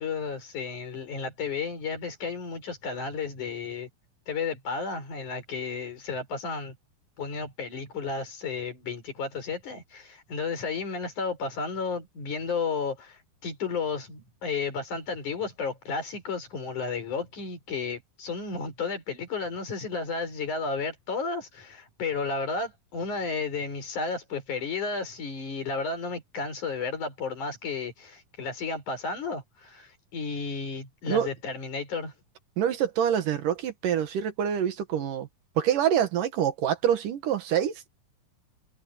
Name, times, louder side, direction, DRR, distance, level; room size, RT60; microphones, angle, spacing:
voice 1, 0.0-3.9 4.3-6.8 7.2-32.1, left 4 dB, 55° left, 6.1 m, -33 dB
voice 2, 32.6-35.3 35.6-37.9, right 9 dB, 65° right, 2.8 m, -26 dB
omnidirectional pair, 4.3 m